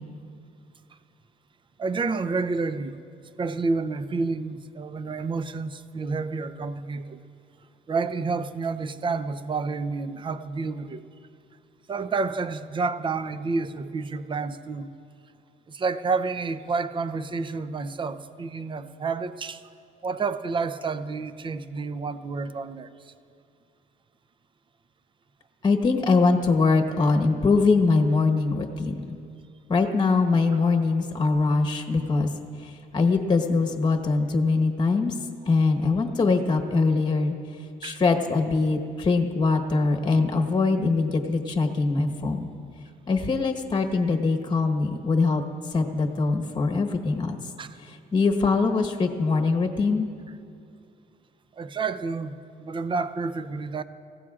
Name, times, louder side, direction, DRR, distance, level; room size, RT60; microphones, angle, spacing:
voice 1, 1.8-3.0 3.4-7.2 7.9-11.0 11.9-14.9 15.7-19.7 20.0-23.1 37.8-38.0 47.6-47.8 51.5-53.8, right 4 dB, 30° right, 11 dB, 0.7 m, -29 dB
voice 2, 25.6-29.2 29.7-32.3 32.6-35.1 35.5-37.3 37.8-42.5 43.1-45.4 45.7-47.4 47.8-50.1, left 3 dB, 25° left, 4 dB, 1.2 m, -23 dB
27.5 x 16.0 x 2.5 m, 2.4 s
cardioid pair, 110°, 17 cm